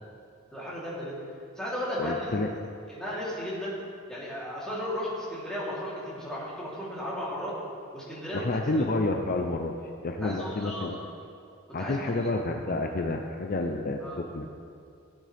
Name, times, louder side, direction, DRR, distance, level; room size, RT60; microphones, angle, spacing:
voice 1, 0.5-1.2 1.6-2.4 2.9-3.8 4.1-7.6 7.9-8.8 10.2-11.0 11.8-12.3 14.0-14.2, equal, 5° left, -8 dB, 3.3 m, -35 dB
voice 2, 2.0-2.5 8.3-11.0 11.7-14.5, left 2 dB, 45° left, 3 dB, 0.6 m, -29 dB
17.0 x 9.1 x 3.5 m, 2.4 s
head